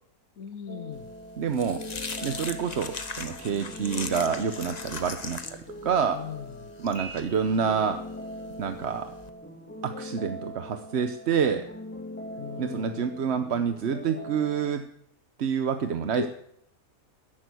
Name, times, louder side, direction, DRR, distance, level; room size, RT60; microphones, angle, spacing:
voice 1, 0.4-1.1 6.1-6.5 12.4-13.1 16.1-16.3, left 8 dB, 70° left, 12 dB, 1.4 m, -37 dB
sound 1, 0.7-14.8, equal, 10° left, 2.0 m, -42 dB
sound 2, 1.0-9.3, left 4 dB, 30° left, 1.1 m, -40 dB
voice 2, 1.4-1.8 2.2-5.6 5.8-6.2 6.8-8.0 8.6-9.1 9.8-11.7 12.6-14.8 15.4-16.3, right 7 dB, 55° right, 8 dB, 1.0 m, -27 dB
sound 3, 6.9-8.4, right 5 dB, 85° right, 5.8 m, -47 dB
14.0 x 11.0 x 9.4 m, 0.74 s
omnidirectional pair, 1.5 m